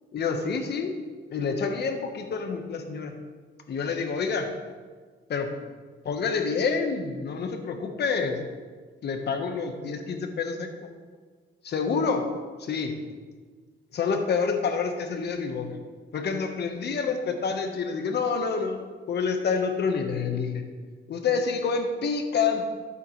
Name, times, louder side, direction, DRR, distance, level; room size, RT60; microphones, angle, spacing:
voice 1, 0.1-0.9 1.3-3.1 3.7-4.5 5.3-5.5 6.0-8.4 9.0-10.9 11.6-12.3 12.6-12.9 13.9-15.8 16.1-18.8 19.1-20.7 21.1-22.7, left 5 dB, 55° left, 5 dB, 1.3 m, -28 dB
11.5 x 8.3 x 3.2 m, 1.5 s
cardioid pair, 90°, 20 cm